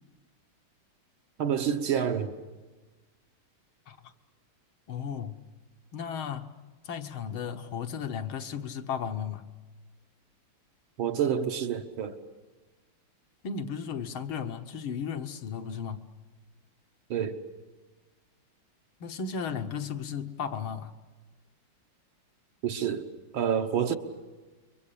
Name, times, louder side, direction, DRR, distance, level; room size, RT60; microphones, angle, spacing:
voice 1, 1.4-2.3 11.0-12.2 17.1-17.4 22.6-23.1 23.3-24.0, right 8 dB, 70° right, 2.0 m, -28 dB
voice 2, 4.9-5.4 5.9-6.5 6.8-9.5 13.4-16.1 19.0-20.9, left 7 dB, 70° left, 1.9 m, -35 dB
29.0 x 23.5 x 8.5 m
omnidirectional pair, 2.4 m